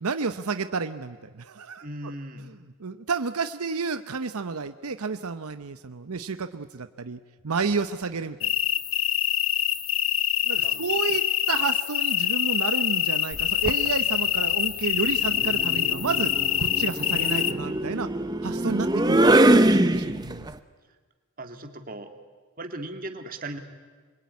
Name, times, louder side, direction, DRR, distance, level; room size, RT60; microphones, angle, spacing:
voice 1, 0.0-1.9 2.8-7.2 7.4-8.5 10.5-16.3 16.6-18.1 18.4-20.5, right 4 dB, 85° right, 10 dB, 0.8 m, -30 dB
voice 2, 1.8-2.5 10.6-10.9 21.4-22.1 22.6-23.6, right 1 dB, 40° right, 5 dB, 2.3 m, -37 dB
sound 1, 8.4-17.5, left 11 dB, 65° left, 1.1 m, -25 dB
sound 2, 13.3-13.9 15.2-20.5, right 1 dB, 20° right, 0.8 m, -23 dB
27.0 x 23.0 x 9.6 m, 1.4 s
head